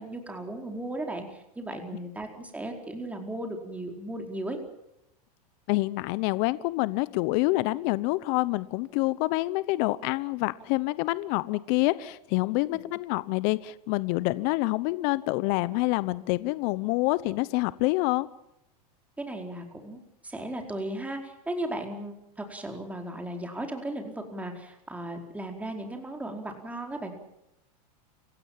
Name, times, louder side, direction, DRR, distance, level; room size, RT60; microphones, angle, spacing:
voice 1, 0.0-4.6 12.6-12.8 19.2-27.1, right 1 dB, 5° right, 3 dB, 4.7 m, -36 dB
voice 2, 5.7-18.3, left 20 dB, 50° left, 17 dB, 1.0 m, -27 dB
30.0 x 16.5 x 7.6 m, 0.82 s
hypercardioid pair, 125°, 20 cm